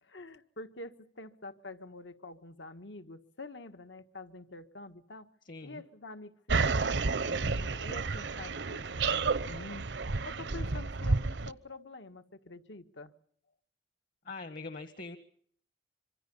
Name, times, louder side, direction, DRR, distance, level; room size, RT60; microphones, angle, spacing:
voice 1, 0.0-5.3 5.6-9.8 10.2-13.1, left 2 dB, 70° left, 9 dB, 1.7 m, -47 dB
voice 2, 5.4-5.8 14.2-15.2, left 3 dB, 45° left, 10 dB, 1.5 m, -42 dB
sound 1, 6.5-11.5, right 4 dB, 65° right, 0.9 m, -31 dB
26.5 x 24.0 x 5.5 m, 0.62 s
head